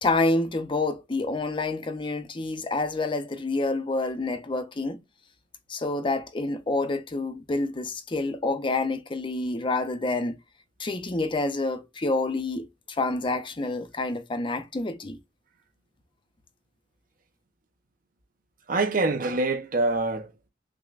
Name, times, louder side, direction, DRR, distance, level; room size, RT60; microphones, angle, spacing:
voice 1, 0.0-5.0 5.7-10.4 10.8-15.2, left 2 dB, 25° left, 0.5 m, -28 dB
voice 2, 18.7-20.5, right 3 dB, 45° right, 0.7 m, -25 dB
5.9 x 2.2 x 2.4 m
head